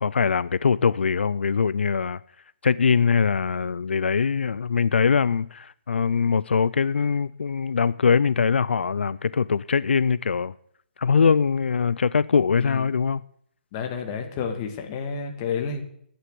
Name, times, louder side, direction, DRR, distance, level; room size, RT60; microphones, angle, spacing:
voice 1, 0.0-2.2 2.6-10.5 11.0-13.2, left 6 dB, 90° left, 19 dB, 0.4 m, -22 dB
voice 2, 12.6-12.9 13.7-15.8, left 6 dB, 20° left, 5 dB, 1.6 m, -30 dB
11.0 x 9.8 x 7.7 m, 0.67 s
hypercardioid pair, 175°, 6 cm